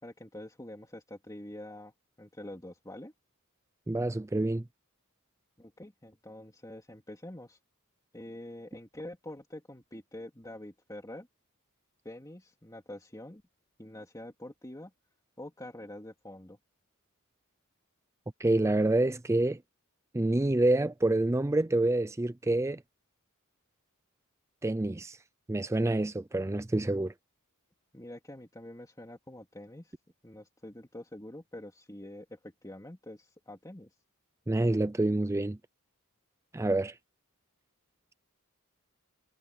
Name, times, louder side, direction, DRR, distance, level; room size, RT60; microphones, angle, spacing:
voice 1, 0.0-3.1 5.6-7.6 8.1-11.3 12.0-13.4 13.8-14.9 15.4-16.6 27.9-29.9 30.2-33.9, left 1 dB, 15° left, 2.7 m, -46 dB
voice 2, 3.9-4.6 18.4-19.6 20.1-22.8 24.6-25.2 25.5-27.1 34.5-35.6 36.5-36.9, right 2 dB, 15° right, 0.4 m, -27 dB
head